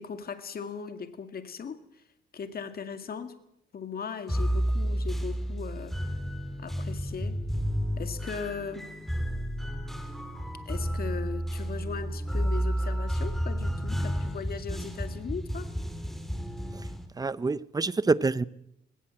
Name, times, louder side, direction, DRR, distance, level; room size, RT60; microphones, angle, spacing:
voice 1, 0.0-2.0 2.3-3.4 3.7-5.9 6.6-7.3 8.0-8.9 10.7-15.7, left 6 dB, 50° left, 9 dB, 2.1 m, -38 dB
sound 1, 4.3-17.0, equal, ahead, 3.1 m, -31 dB
voice 2, 17.2-18.4, right 3 dB, 20° right, 18 dB, 0.8 m, -27 dB
20.0 x 17.5 x 7.7 m, 0.78 s
cardioid pair, 90°, 20 cm